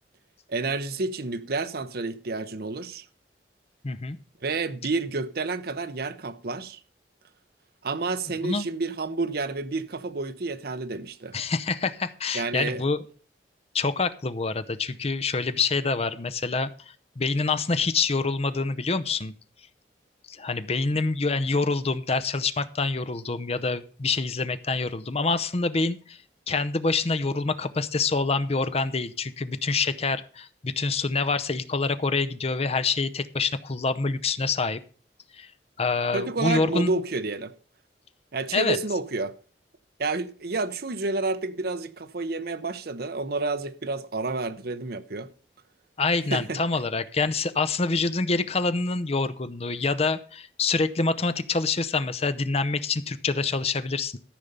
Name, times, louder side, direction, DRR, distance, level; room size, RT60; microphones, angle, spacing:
voice 1, 0.5-3.0 4.4-6.8 7.8-11.4 12.3-12.8 36.1-37.5 38.3-39.4 40.0-45.3 46.3-46.6, right 3 dB, 60° right, 0.8 m, -30 dB
voice 2, 3.8-4.2 8.4-8.7 11.3-13.0 13.7-19.3 20.3-26.2 26.5-34.8 35.3-35.5 35.8-37.0 38.5-38.8 46.0-54.2, left 4 dB, 35° left, 0.7 m, -26 dB
13.5 x 5.5 x 6.7 m
head